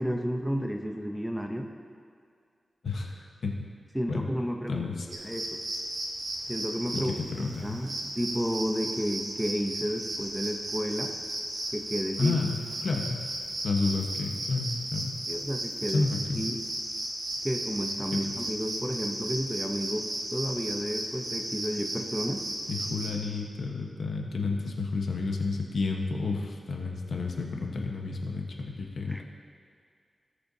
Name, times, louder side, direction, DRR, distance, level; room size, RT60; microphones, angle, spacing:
voice 1, 0.0-1.7 3.9-5.6 6.5-7.1 7.6-11.1 11.7-12.4 15.3-16.0 16.4-16.6 17.4-22.4 29.1-29.2, equal, 5° right, 3 dB, 0.7 m, -32 dB
voice 2, 2.8-3.6 4.1-4.3 4.7-5.1 6.9-7.0 7.3-7.8 12.2-13.2 13.6-15.2 15.9-16.4 18.1-18.3 22.7-29.2, left 3 dB, 70° left, 1 dB, 1.1 m, -31 dB
sound 1, 5.1-23.1, right 1 dB, 50° right, 1.7 m, -35 dB
18.0 x 6.7 x 2.8 m, 2.2 s
wide cardioid pair, 125°, 0 cm